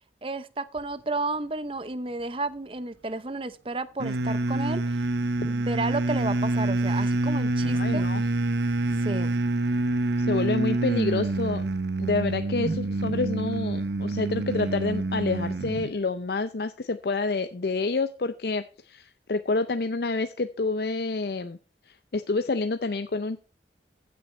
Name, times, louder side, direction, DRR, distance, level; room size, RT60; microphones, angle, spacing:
voice 1, 0.2-5.0 5.5-8.1 9.0-9.4, right 2 dB, 30° right, 14 dB, 0.7 m, -32 dB
sound 1, 4.0-15.9, right 2 dB, 80° right, 0.7 m, -26 dB
voice 2, 7.6-8.2 10.2-11.6 12.0-21.6 21.9-23.4, left 3 dB, 65° left, 10 dB, 0.6 m, -28 dB
14.5 x 7.0 x 4.4 m, 0.35 s
head